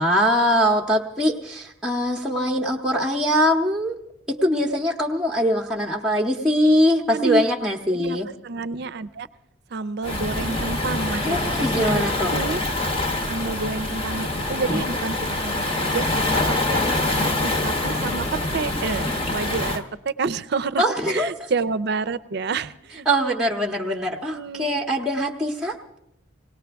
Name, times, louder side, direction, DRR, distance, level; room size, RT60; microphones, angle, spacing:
voice 1, 0.0-4.0 4.3-8.3 11.2-12.3 20.8-21.3 23.1-26.0, equal, 5° right, -2 dB, 0.7 m, -22 dB
voice 2, 7.1-7.4 7.9-8.2 8.4-9.3 9.7-11.4 11.8-12.0 12.3-12.6 13.3-16.8 17.1-18.2 18.5-23.1 24.3-24.7, right 4 dB, 55° right, 15 dB, 0.5 m, -29 dB
Waves surf, 10.0-19.8, left 2 dB, 30° left, 0.9 m, -25 dB
20.0 x 18.0 x 3.4 m, 0.80 s
head